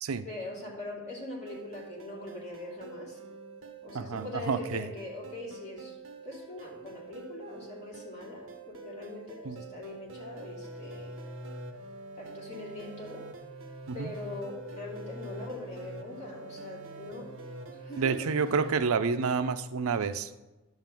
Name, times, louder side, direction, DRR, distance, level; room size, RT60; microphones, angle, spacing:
voice 1, 0.2-3.2 3.8-6.0 6.2-11.1 12.2-13.2 13.9-17.3 17.7-18.4, left 2 dB, 35° left, -5 dB, 3.0 m, -42 dB
sound 1, 1.5-18.7, right 2 dB, 70° right, 1.0 m, -45 dB
voice 2, 3.9-4.9 9.4-9.6 13.9-14.1 18.0-20.4, right 5 dB, 85° right, 12 dB, 0.5 m, -29 dB
11.0 x 3.8 x 7.4 m, 1.1 s
head